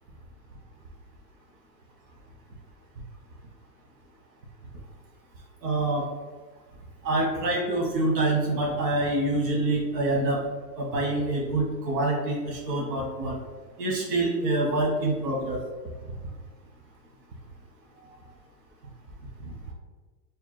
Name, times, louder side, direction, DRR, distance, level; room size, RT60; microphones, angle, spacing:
voice 1, 5.6-6.0 7.0-10.4 10.8-13.3 13.8-15.6, right 2 dB, 85° right, -1 dB, 1.3 m, -26 dB
3.6 x 2.3 x 4.1 m, 1.4 s
hypercardioid pair, 110°, 49 cm